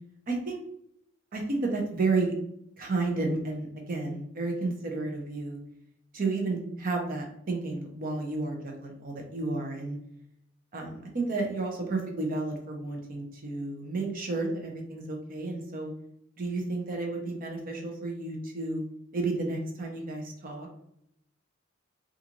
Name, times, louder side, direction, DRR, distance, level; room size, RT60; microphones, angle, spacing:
voice 1, 0.3-0.6 1.3-2.3 2.8-5.6 6.1-10.0 10.7-15.9 16.4-18.8 19.1-20.7, right 3 dB, 45° right, 1 dB, 0.6 m, -32 dB
2.5 x 2.4 x 2.9 m, 0.74 s
head